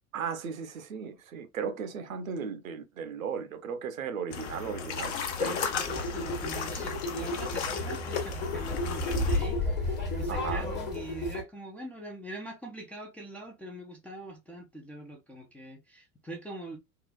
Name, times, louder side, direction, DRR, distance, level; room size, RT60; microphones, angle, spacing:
voice 1, 0.1-5.6 7.9-8.0 10.3-10.7, right 6 dB, 75° right, 0.7 m, -36 dB
sound 1, 4.3-9.4, left 6 dB, 50° left, 0.8 m, -35 dB
voice 2, 5.4-16.8, right 1 dB, 5° left, 0.3 m, -43 dB
sound 2, 5.8-11.4, left 2 dB, 25° left, 1.0 m, -32 dB
3.6 x 2.3 x 2.2 m
figure-of-eight pair, 80°, 42 cm